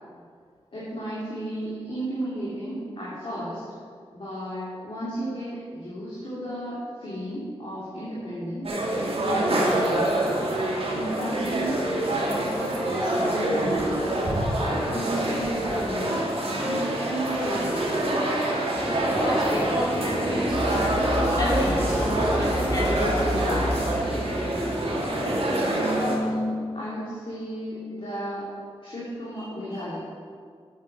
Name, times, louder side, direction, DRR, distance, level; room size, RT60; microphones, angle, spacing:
voice 1, 0.7-3.6 4.1-8.7 9.2-10.2 10.9-14.1 14.5-16.2 16.6-17.8 25.6-28.5 28.8-30.0, equal, 55° left, -9 dB, 2.9 m, -33 dB
sound 1, 8.6-26.2, right 1 dB, 60° right, 2.2 m, -26 dB
sound 2, 18.7-25.6, equal, 15° left, 1.8 m, -33 dB
voice 2, 19.2-20.7 21.4-23.7, left 1 dB, 35° left, -5 dB, 3.1 m, -29 dB
sound 3, 20.5-24.8, equal, 80° left, 2.7 m, -31 dB
8.5 x 8.5 x 6.1 m, 2.1 s
wide cardioid pair, 95°, 11 cm